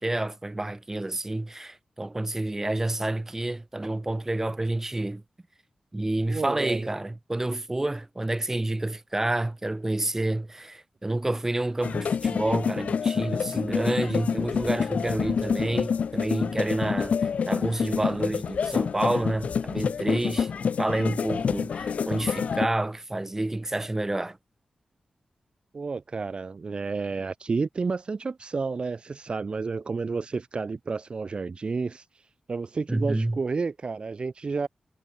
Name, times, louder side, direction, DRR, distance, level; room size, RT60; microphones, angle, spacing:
voice 1, 0.0-5.2 5.9-24.4 32.9-33.4, right 2 dB, 15° right, 6.6 m, -29 dB
voice 2, 6.3-6.9 25.7-32.0 32.5-34.7, right 4 dB, 45° right, 3.2 m, -31 dB
sound 1, 11.8-22.7, left 6 dB, 75° left, 0.6 m, -27 dB
wide cardioid pair, 125°, 2 cm